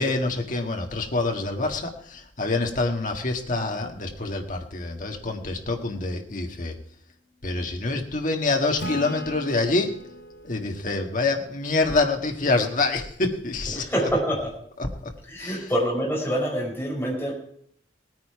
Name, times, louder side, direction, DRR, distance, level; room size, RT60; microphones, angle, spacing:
voice 1, 0.0-6.7 7.4-10.0 10.4-14.1 14.8-14.9 15.4-15.6, left 3 dB, 45° left, 3 dB, 1.7 m, -26 dB
Acoustic guitar / Strum, 8.8-12.2, left 1 dB, 90° left, 2.9 m, -39 dB
voice 2, 13.7-14.5 15.3-17.3, equal, 10° left, -3 dB, 5.0 m, -26 dB
19.0 x 9.6 x 4.7 m, 0.67 s
head